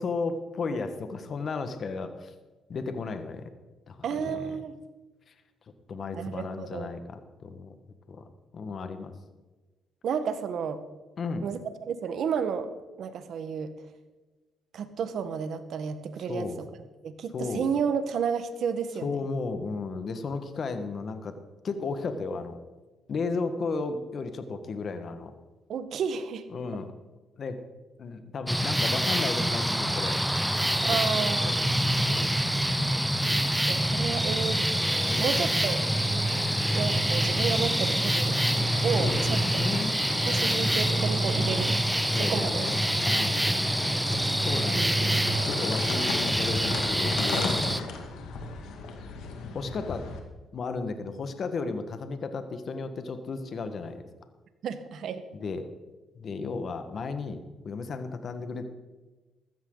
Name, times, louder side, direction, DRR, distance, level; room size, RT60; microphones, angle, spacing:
voice 1, 0.0-2.3 2.7-3.5 3.9-4.6 5.3-5.4 5.9-7.7 8.1-8.2 8.5-9.1 11.2-11.4 16.3-16.6 17.3-17.7 19.0-21.4 21.6-22.6 23.1-25.3 26.5-26.9 27.4-27.6 28.0-30.2 30.7-31.6 32.0-32.3 35.0-35.5 38.7-40.0 41.3-41.7 42.1-43.9 44.4-45.2 45.4-47.6 49.5-50.0 50.5-54.1 55.3-55.7 56.1-57.4 57.6-58.7, left 4 dB, 50° left, 8 dB, 1.4 m, -34 dB
voice 2, 4.0-4.8 6.1-6.9 10.0-10.8 11.4-11.6 11.9-12.7 13.0-13.7 14.7-16.5 17.0-19.2 25.7-26.5 30.8-31.5 33.7-35.9 36.7-38.3 38.8-39.6 40.3-41.8 42.2-42.7 44.7-44.9 54.6-55.2, right 7 dB, 65° right, 10 dB, 1.3 m, -31 dB
sound 1, 28.5-47.8, right 1 dB, 5° right, 0.8 m, -26 dB
sound 2, 34.5-50.2, left 4 dB, 85° left, 2.1 m, -38 dB
15.5 x 13.0 x 3.9 m, 1.2 s
cardioid pair, 90°, 0 cm